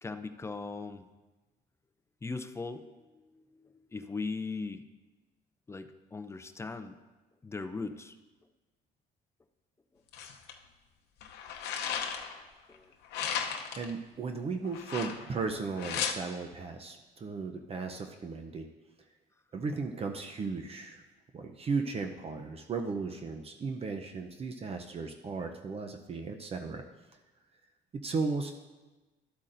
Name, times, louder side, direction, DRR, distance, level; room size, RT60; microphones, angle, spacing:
voice 1, 0.0-1.1 2.2-2.8 3.3-3.4 3.9-4.8 5.7-7.0 7.4-8.2 12.7-12.9, left 4 dB, 15° left, 9 dB, 0.5 m, -38 dB
sound 1, 10.1-10.5 11.2-12.4 13.1-13.9 14.7-15.4 15.8-16.1, left 8 dB, 85° left, 0.8 m, -35 dB
voice 2, 13.7-18.7 19.5-21.0 21.3-26.8 27.9-28.5, right 4 dB, 35° right, 5 dB, 0.6 m, -36 dB
12.0 x 8.2 x 2.6 m, 1.2 s
cardioid pair, 110°, 17 cm